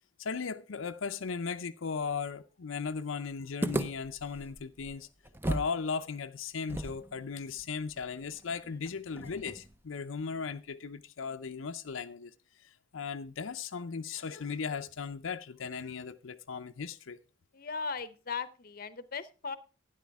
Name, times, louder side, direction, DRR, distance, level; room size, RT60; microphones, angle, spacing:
voice 1, 0.2-5.1 5.5-12.3 12.6-17.2, left 5 dB, 80° left, 0.6 m, -37 dB
sound 1, 3.6-5.8 6.0-6.1 6.7-9.8, right 1 dB, 10° right, 0.6 m, -37 dB
voice 2, 17.5-19.6, left 5 dB, 45° left, 0.8 m, -38 dB
12.5 x 10.0 x 3.5 m
head